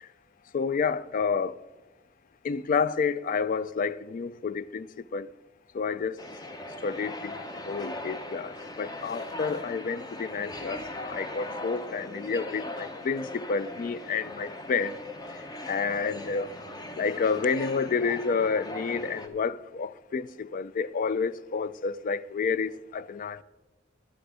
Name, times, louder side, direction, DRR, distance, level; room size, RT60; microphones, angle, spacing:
voice 1, 0.5-1.6 2.4-4.9 5.1-5.3 5.7-6.2 6.8-7.3 7.7-8.5 8.8-14.9 15.7-16.5 17.0-23.4, left 5 dB, 45° left, 0.3 m, -29 dB
sound 1, 6.2-19.3, left 1 dB, 20° left, 0.8 m, -39 dB
10.5 x 10.0 x 4.9 m
head